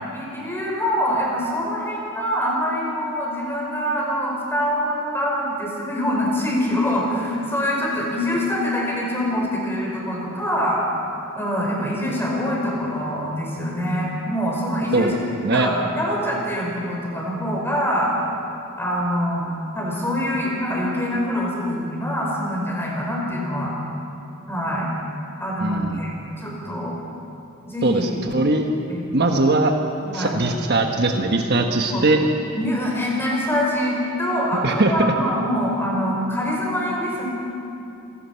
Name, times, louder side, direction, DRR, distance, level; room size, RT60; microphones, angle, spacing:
voice 1, 0.1-10.8 11.4-15.1 15.5-18.3 18.8-19.5 19.7-23.7 24.5-24.9 25.4-27.0 27.7-28.2 28.8-29.1 30.0-30.4 31.8-32.0 32.5-37.3, equal, 10° left, -3 dB, 5.6 m, -24 dB
voice 2, 25.6-26.0 27.8-28.7 29.1-29.7 30.1-32.2 34.6-35.1, right 2 dB, 50° right, 3 dB, 1.3 m, -20 dB
27.5 x 18.0 x 5.8 m, 2.7 s
head